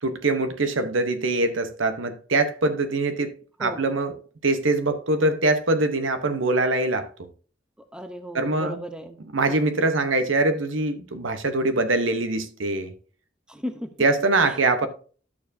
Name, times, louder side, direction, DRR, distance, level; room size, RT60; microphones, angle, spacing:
voice 1, 0.0-3.3 3.6-4.1 4.4-7.1 8.3-8.8 9.3-12.9 14.0-14.9, right 2 dB, 80° right, 1.0 m, -23 dB
voice 2, 7.9-9.2 9.5-9.6 13.5-13.9 14.4-14.9, equal, 5° right, 0.7 m, -36 dB
11.5 x 6.8 x 2.7 m
head